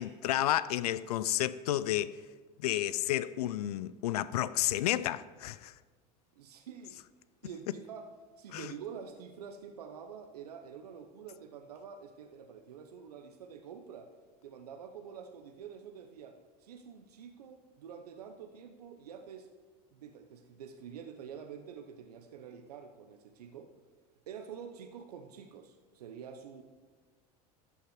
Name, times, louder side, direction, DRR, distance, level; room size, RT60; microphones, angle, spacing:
voice 1, 0.0-2.1 2.6-5.7 8.5-8.7, left 13 dB, 85° left, 0.5 m, -31 dB
voice 2, 6.4-7.0 7.4-8.1 8.4-14.1 14.4-19.5 19.9-23.7 24.3-26.6, right 7 dB, 90° right, 0.9 m, -47 dB
13.5 x 5.8 x 7.7 m
hypercardioid pair, 85°, 19 cm